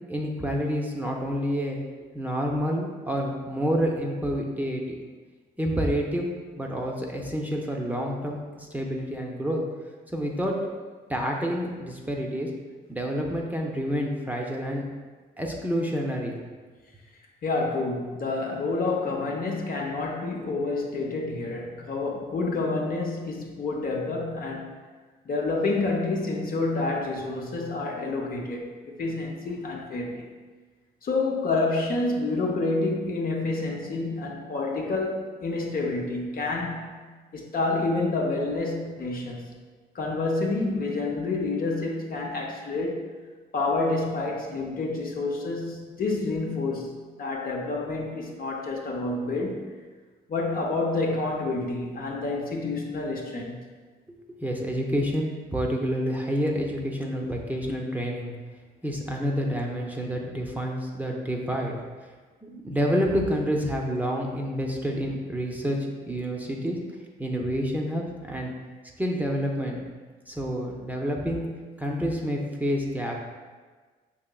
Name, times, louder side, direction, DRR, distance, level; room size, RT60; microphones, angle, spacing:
voice 1, 0.1-1.8 2.1-4.8 5.6-6.3 6.6-9.6 10.1-10.5 11.1-12.5 12.9-14.8 15.4-16.3 54.1-58.3 58.8-61.8 62.4-65.8 66.1-66.8 67.2-68.5 69.0-69.8 70.3-71.5 71.8-73.1, equal, 10° right, -1 dB, 0.6 m, -28 dB
voice 2, 17.4-24.7 25.3-30.3 31.0-37.0 37.3-39.5 39.9-43.1 43.5-49.7 50.3-53.6, left 3 dB, 50° left, 0 dB, 0.7 m, -28 dB
5.6 x 2.9 x 2.3 m, 1.4 s
supercardioid pair, 65°, 19 cm